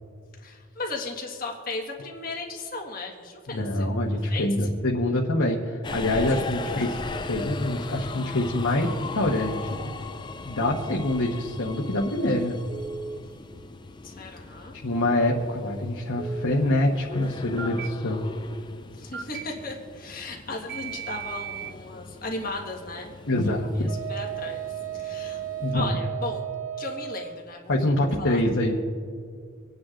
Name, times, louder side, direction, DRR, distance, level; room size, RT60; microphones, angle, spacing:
voice 1, 0.4-4.7 6.2-6.8 14.0-14.8 18.9-23.1 23.4-25.4 25.7-26.4 26.8-28.4, left 2 dB, 45° left, -1 dB, 1.6 m, -36 dB
voice 2, 3.5-6.9 7.2-9.9 10.4-12.6 14.8-18.3 23.3-23.9 25.6-26.0 27.7-28.8, left 1 dB, 75° left, -3 dB, 1.2 m, -25 dB
Subway metro underground, 5.8-25.7, left 3 dB, 20° left, 0.4 m, -39 dB
Telephone, 12.7-13.2 16.2-16.7 17.6-17.9 19.1-19.4 20.7-21.7, right 6 dB, 50° right, 0.6 m, -35 dB
Wind instrument woodwind instrument, 23.9-27.4, right 11 dB, 85° right, 1.1 m, -34 dB
26.5 x 9.5 x 2.5 m, 2.1 s
head